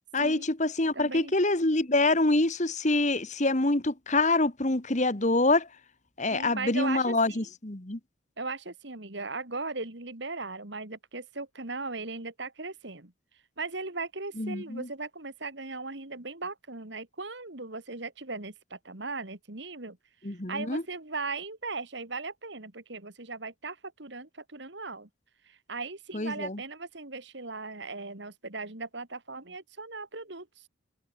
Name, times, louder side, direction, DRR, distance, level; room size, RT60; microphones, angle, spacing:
voice 1, 0.1-5.7 6.2-8.0 14.4-14.9 20.2-20.8 26.1-26.6, left 2 dB, 35° left, 1.6 m, -26 dB
voice 2, 0.9-1.3 6.3-7.5 8.4-13.1 13.6-20.0 20.3-25.1 25.4-30.7, right 3 dB, 60° right, 2.3 m, -38 dB
open air
head